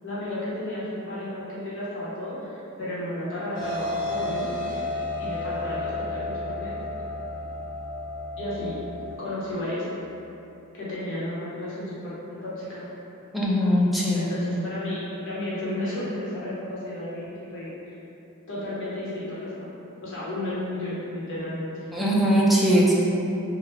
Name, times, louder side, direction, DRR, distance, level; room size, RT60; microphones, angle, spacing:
voice 1, 0.0-4.8 5.2-6.8 8.4-8.7 9.2-9.8 10.7-12.1 12.4-12.9 14.1-17.9 18.5-19.7 20.0-21.8, left 1 dB, 60° left, -9 dB, 1.0 m, -33 dB
sound 1, 3.5-9.1, left 2 dB, 40° left, 0.9 m, -32 dB
voice 2, 13.3-14.3 21.9-22.9, equal, ahead, -6 dB, 0.4 m, -20 dB
3.1 x 2.2 x 3.2 m, 2.9 s
head